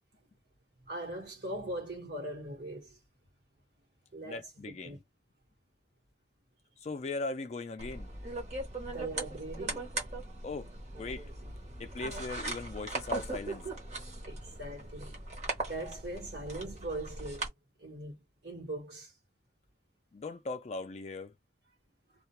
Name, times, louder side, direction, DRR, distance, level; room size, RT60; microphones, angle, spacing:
voice 1, 0.8-3.0 4.1-5.0 8.8-9.9 14.2-15.2 15.7-17.5 17.8-19.1, right 1 dB, 65° right, 1.1 m, -41 dB
voice 2, 4.2-5.0 6.8-8.1 10.4-10.7 11.0-11.3 11.8-13.6 20.1-21.3, left 3 dB, 40° left, 0.3 m, -39 dB
sound 1, 7.8-17.5, right 2 dB, 40° right, 0.9 m, -39 dB
2.3 x 2.2 x 2.8 m
head